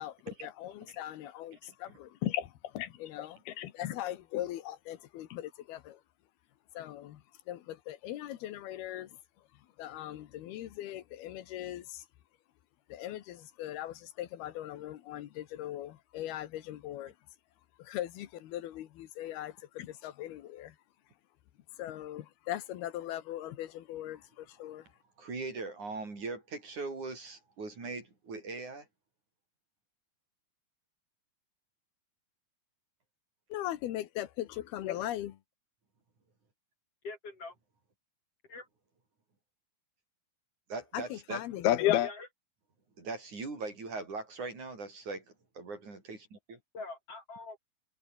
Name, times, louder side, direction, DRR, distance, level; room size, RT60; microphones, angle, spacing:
voice 1, 0.0-6.0 6.8-7.2 7.5-9.1 9.8-12.1 12.9-17.1 17.8-20.8 21.8-24.9 33.5-35.4 40.9-42.1, left 13 dB, 85° left, 3.3 m, -37 dB
voice 2, 1.5-2.0 25.2-28.9 40.7-41.4 43.0-46.6, right 3 dB, 50° right, 8.2 m, -41 dB
voice 3, 37.0-37.5 38.5-38.7 42.0-42.3 46.7-47.6, left 3 dB, 40° left, 4.8 m, -43 dB
omnidirectional pair, 4.4 m